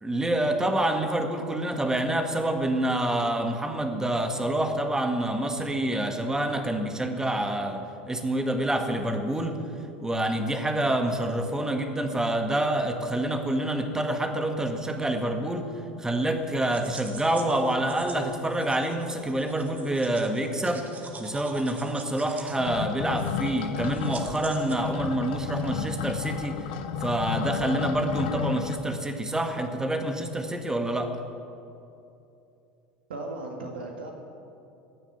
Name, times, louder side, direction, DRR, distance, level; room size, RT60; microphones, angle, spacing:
voice 1, 0.0-9.6 10.0-15.7 16.0-20.9 21.2-26.7 27.0-31.1, right 1 dB, 10° right, 5 dB, 1.8 m, -27 dB
sound 1, 16.2-24.8, right 4 dB, 30° right, 1.8 m, -45 dB
sound 2, 22.6-28.8, left 8 dB, 65° left, 0.9 m, -32 dB
voice 2, 33.1-34.1, right 2 dB, 80° right, 2 dB, 1.8 m, -36 dB
16.0 x 7.2 x 9.4 m, 2.8 s
hypercardioid pair, 75°, 5 cm